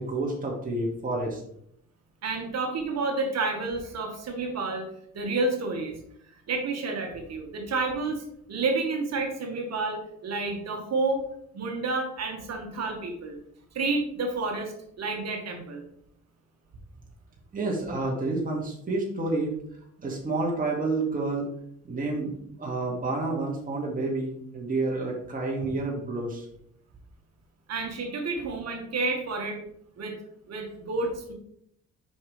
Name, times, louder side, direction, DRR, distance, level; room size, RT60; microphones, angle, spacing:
voice 1, 0.0-1.4 17.5-19.6 20.0-21.5 21.8-26.5, right 2 dB, 30° right, -2 dB, 2.0 m, -29 dB
voice 2, 2.2-4.9 5.1-5.9 6.5-8.2 8.5-11.2 11.5-13.4 13.7-15.8 27.7-29.6 30.0-30.2 30.5-31.3, right 3 dB, 60° right, 3 dB, 1.6 m, -30 dB
7.2 x 5.7 x 3.3 m, 0.72 s
cardioid pair, 90°, 30 cm